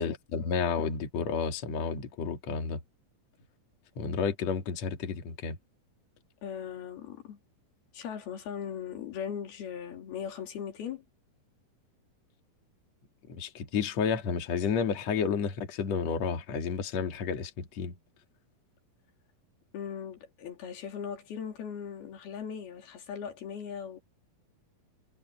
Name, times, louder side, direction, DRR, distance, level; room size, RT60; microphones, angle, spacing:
voice 1, 0.0-2.8 4.0-5.6 13.3-18.0, left 6 dB, 50° left, 3.3 m, -31 dB
voice 2, 6.4-7.4 7.9-11.0 19.7-24.0, left 8 dB, 85° left, 5.0 m, -39 dB
omnidirectional pair, 4.3 m